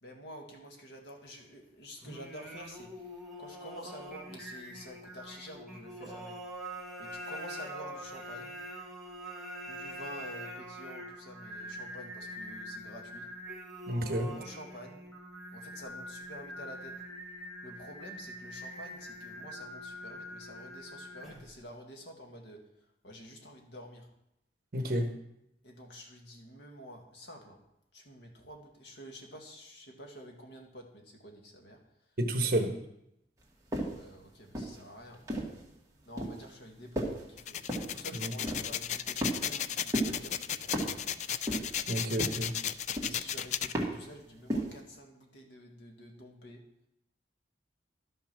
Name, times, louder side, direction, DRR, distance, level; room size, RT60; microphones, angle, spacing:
voice 1, 0.0-6.4 7.0-8.5 9.7-13.3 14.3-15.0 15.5-17.0 17.6-22.6 23.0-24.1 25.6-27.6 27.9-31.8 32.4-32.6 33.8-35.2 36.1-41.0 42.9-46.6, equal, 80° left, 2 dB, 1.8 m, -49 dB
Singing, 2.0-21.6, equal, ahead, 1.4 m, -44 dB
voice 2, 13.9-14.3 24.7-25.1 32.2-32.7 38.1-38.3 41.9-42.5, right 1 dB, 55° right, 6 dB, 1.2 m, -30 dB
sound 1, 33.7-34.1 34.5-35.6 36.2-36.5 37.0-37.3 37.7-38.0 38.4-38.8 39.2-39.7 39.9-40.3 40.7-41.1 41.5-41.9 42.2-42.6 43.0-43.3 43.7-44.1 44.5-44.8, right 1 dB, 20° right, 1.9 m, -34 dB
sound 2, 37.4-43.7, left 9 dB, 40° left, 0.3 m, -35 dB
12.0 x 5.7 x 6.0 m, 0.83 s
head